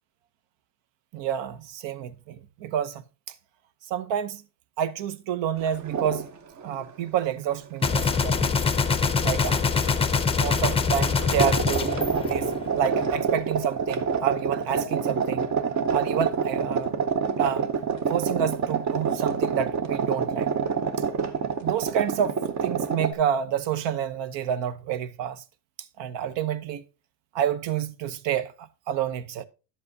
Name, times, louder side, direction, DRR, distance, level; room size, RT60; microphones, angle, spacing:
voice 1, 1.1-3.0 3.9-4.4 4.8-6.3 6.6-8.6 9.2-9.7 10.4-15.4 15.9-16.9 17.4-17.7 18.1-20.5 21.6-25.4 26.0-26.8 27.3-29.4, right 9 dB, 70° right, 0.9 m, -29 dB
sound 1, 5.6-6.3 6.6-6.8 8.1-8.2 9.3-9.5 9.8-23.1, right 6 dB, 40° right, 0.8 m, -27 dB
Gunshot gunfire, 7.8-13.0, left 5 dB, 15° left, 0.5 m, -24 dB
11.0 x 7.5 x 2.7 m
cardioid pair, 135°, 45 cm